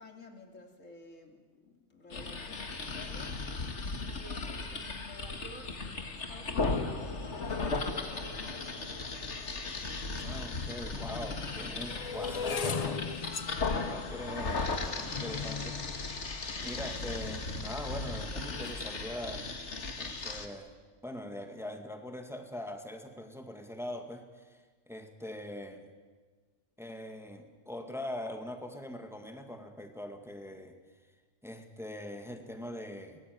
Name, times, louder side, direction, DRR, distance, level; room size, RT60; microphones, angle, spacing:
voice 1, 0.0-8.7, left 2 dB, 85° left, 4 dB, 3.1 m, -52 dB
sound 1, 2.1-20.5, left 3 dB, 65° left, 2.2 m, -36 dB
sound 2, 10.2-10.3 11.0-17.2 17.9-18.2 18.5-18.9, left 5 dB, 35° left, 0.8 m, -38 dB
voice 2, 10.2-16.0 16.3-19.5 20.0-20.7 21.0-25.8 26.8-30.8 31.4-33.2, left 1 dB, ahead, 5 dB, 1.9 m, -42 dB
23.5 x 19.5 x 9.6 m, 1.4 s
omnidirectional pair, 1.3 m